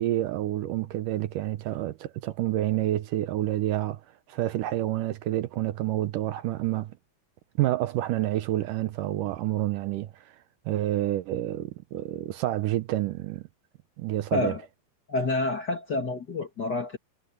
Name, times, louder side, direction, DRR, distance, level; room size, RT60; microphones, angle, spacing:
voice 1, 0.0-4.0 4.3-7.0 7.6-10.4 10.7-13.4 14.0-14.5, right 14 dB, 75° right, 2.2 m, -28 dB
voice 2, 14.3-14.6 15.1-17.0, left 2 dB, 35° left, 2.0 m, -28 dB
omnidirectional pair, 4.1 m